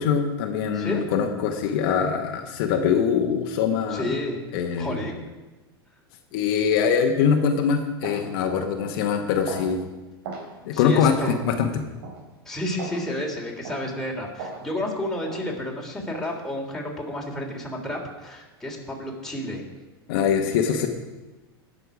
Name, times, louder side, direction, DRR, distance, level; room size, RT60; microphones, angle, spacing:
voice 1, 0.0-4.1 4.5-5.0 6.3-9.8 10.6-11.1 11.4-11.8 20.1-20.9, left 7 dB, 60° left, 4 dB, 1.3 m, -23 dB
voice 2, 0.7-1.0 3.9-4.4 4.8-5.2 10.7-11.3 12.4-19.6, left 1 dB, 5° left, -1 dB, 3.2 m, -31 dB
sound 1, 7.3-7.5 8.0-8.3 8.8-9.0 9.5-9.7 10.2-10.5 11.2-11.4 12.0-12.2 12.8-13.0 13.6-13.9 14.4-14.6 15.2-15.4 16.1-16.3, right 4 dB, 70° right, 3.4 m, -37 dB
18.0 x 6.8 x 5.0 m, 1.2 s
hypercardioid pair, 100°, 13 cm